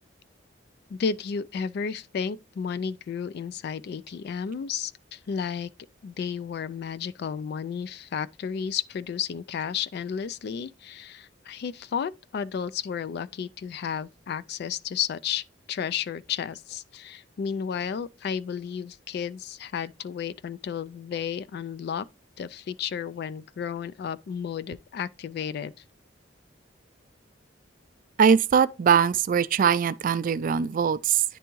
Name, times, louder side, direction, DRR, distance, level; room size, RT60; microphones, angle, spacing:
voice 1, 0.9-5.7 6.0-22.1 22.4-25.7, left 7 dB, 60° left, 0.3 m, -32 dB
voice 2, 28.2-31.2, right 7 dB, 45° right, 0.3 m, -21 dB
9.8 x 3.4 x 3.0 m
head